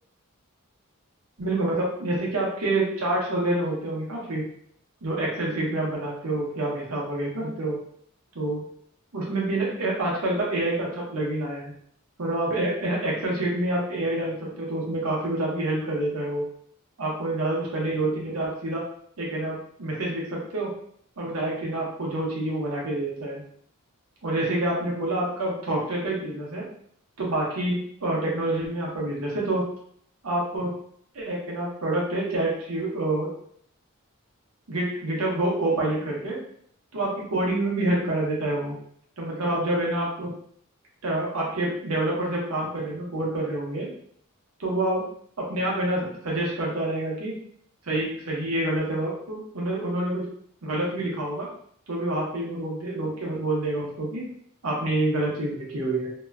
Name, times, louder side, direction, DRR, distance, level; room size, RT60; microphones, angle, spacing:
voice 1, 1.4-4.4 5.0-7.8 8.3-8.6 9.1-11.7 12.2-16.4 17.0-18.8 19.2-20.7 21.2-23.4 24.2-26.6 27.2-29.7 30.2-30.7 31.1-33.3 34.7-36.4 36.9-38.8 39.2-40.3 41.0-43.9 44.6-45.0 45.4-47.3 47.8-50.3 50.6-51.5 51.9-54.2 54.6-56.1, right 1 dB, 85° right, -3 dB, 0.8 m, -27 dB
2.8 x 2.2 x 2.3 m, 0.63 s
head